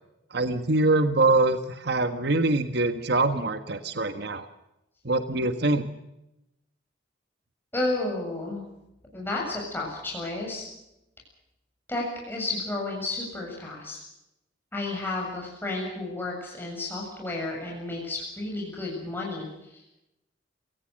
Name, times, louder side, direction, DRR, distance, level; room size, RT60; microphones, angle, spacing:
voice 1, 0.3-1.6 1.8-4.4 5.0-5.9, right 2 dB, 60° right, 8 dB, 1.6 m, -24 dB
voice 2, 7.7-8.6 9.1-10.6 11.9-14.0 14.7-19.8, left 2 dB, 10° left, -2 dB, 7.3 m, -32 dB
27.0 x 18.5 x 6.5 m, 0.88 s
head